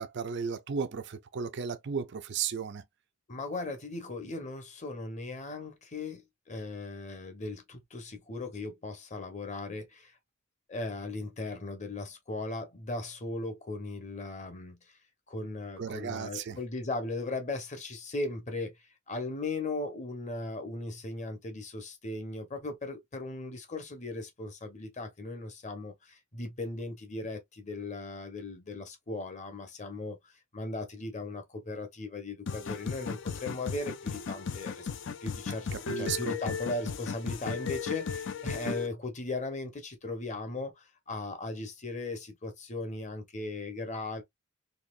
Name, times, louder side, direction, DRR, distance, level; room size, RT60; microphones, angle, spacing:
voice 1, 0.0-2.8 15.8-16.6 35.7-36.3, right 6 dB, 55° right, 0.4 m, -35 dB
voice 2, 3.3-6.2 6.5-10.1 10.7-14.8 15.3-18.7 19.1-25.9 26.3-30.2 30.5-34.9 35.2-35.7 36.0-40.7 41.1-44.2, left 2 dB, 35° left, 1.0 m, -37 dB
sound 1, 32.5-38.9, left 5 dB, 60° left, 0.5 m, -36 dB
4.1 x 2.9 x 2.4 m
head